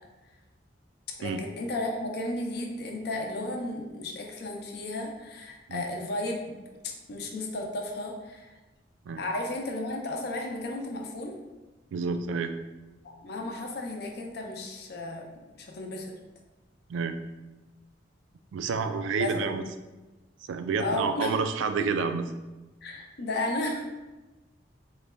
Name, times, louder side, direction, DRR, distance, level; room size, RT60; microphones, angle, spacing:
voice 1, 1.2-6.6 6.8-8.6 9.2-11.3 13.0-15.2 15.6-16.2 19.1-19.3 20.8-21.4 21.8-21.9 22.8-23.8, left 2 dB, 60° left, 1 dB, 0.5 m, -34 dB
voice 2, 11.9-12.5 16.9-17.2 18.5-19.6 20.5-22.3, right 5 dB, 90° right, 8 dB, 0.3 m, -29 dB
3.8 x 2.2 x 3.3 m, 1.1 s
head